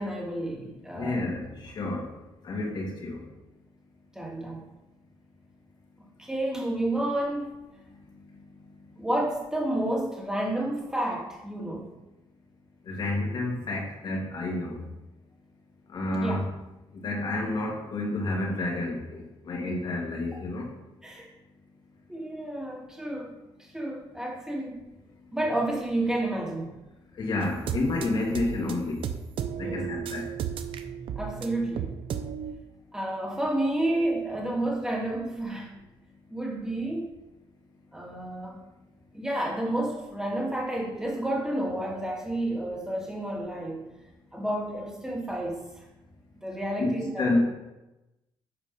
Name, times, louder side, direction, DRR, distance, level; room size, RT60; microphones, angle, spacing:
voice 1, 0.0-1.2 4.1-4.6 6.2-7.5 9.0-11.9 16.2-16.4 21.0-21.3 22.1-24.9 25.3-26.7 29.6-29.8 31.2-31.9 32.9-35.7 36.3-37.1 37.9-38.6 39.1-43.9 44.3-45.8 46.4-47.4, right 1 dB, 5° right, -2 dB, 2.3 m, -30 dB
voice 2, 0.9-2.1 2.4-3.2 12.9-14.8 15.9-16.5 16.9-20.7 27.2-29.0 29.6-30.3 46.8-47.4, left 2 dB, 55° left, -2 dB, 2.6 m, -29 dB
sound 1, 27.4-32.5, right 8 dB, 70° right, 0.7 m, -34 dB
8.3 x 5.0 x 5.4 m, 0.99 s
cardioid pair, 105°, 9 cm